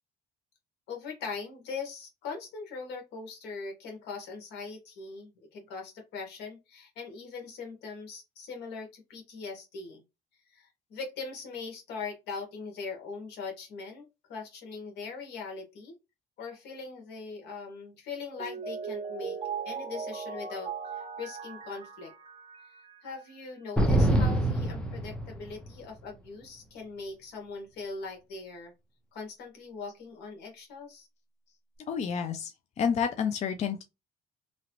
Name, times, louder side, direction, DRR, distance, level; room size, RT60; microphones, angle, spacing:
voice 1, 0.9-10.0 10.5-15.9 16.4-19.4 19.6-22.1 23.0-28.7 29.1-31.1, left 4 dB, 80° left, 1.4 m, -41 dB
Mallet percussion, 18.1-23.1, right 5 dB, 35° right, 0.8 m, -38 dB
sound 1, 23.8-25.7, right 1 dB, 5° left, 0.7 m, -25 dB
voice 2, 31.9-33.8, left 7 dB, 40° left, 0.4 m, -30 dB
3.0 x 2.6 x 2.9 m
cardioid pair, 110°, 17 cm